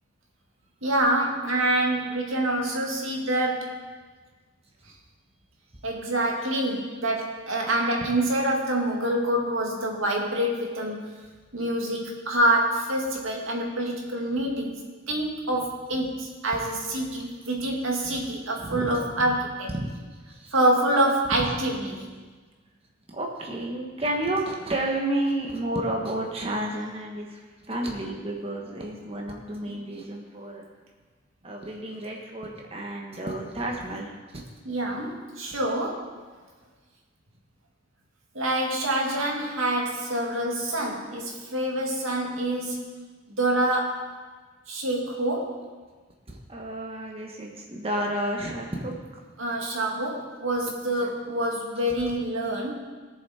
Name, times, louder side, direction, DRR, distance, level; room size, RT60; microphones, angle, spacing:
voice 1, 0.8-3.8 5.8-11.1 11.5-14.8 15.1-19.7 20.5-22.0 29.7-29.8 34.6-36.1 38.3-42.8 43.3-44.2 44.7-45.7 49.4-52.7, right 1 dB, 90° right, -1 dB, 2.3 m, -26 dB
voice 2, 18.6-18.9 19.8-20.0 20.3-20.5 21.4-21.6 23.1-27.4 27.7-30.6 31.4-34.1 46.3-48.9 51.0-51.1, right 1 dB, 30° right, 0 dB, 1.3 m, -31 dB
20.5 x 7.2 x 4.3 m, 1.4 s
head